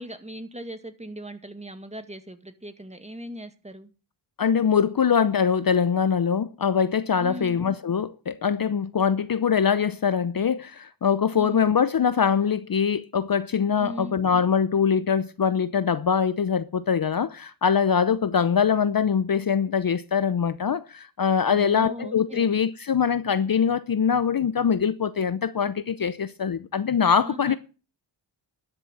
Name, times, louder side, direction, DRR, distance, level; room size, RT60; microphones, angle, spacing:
voice 1, 0.0-3.9 7.2-7.6 11.3-11.7 13.8-14.2 21.5-22.6 27.2-27.6, equal, 15° right, 2.1 m, -39 dB
voice 2, 4.4-27.5, left 7 dB, 45° left, 0.7 m, -23 dB
12.5 x 6.8 x 8.1 m
cardioid pair, 60°, 49 cm